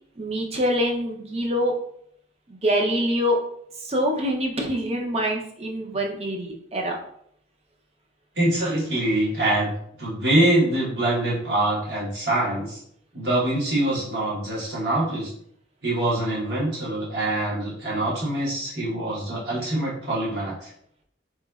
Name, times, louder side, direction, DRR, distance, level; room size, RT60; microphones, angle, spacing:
voice 1, 0.2-1.8 2.5-3.4 3.8-7.0, equal, 35° right, 1 dB, 0.6 m, -25 dB
voice 2, 8.3-9.7 10.0-12.8 13.1-15.3 15.8-20.7, right 1 dB, 60° right, -6 dB, 1.3 m, -24 dB
3.9 x 3.0 x 2.3 m, 0.69 s
head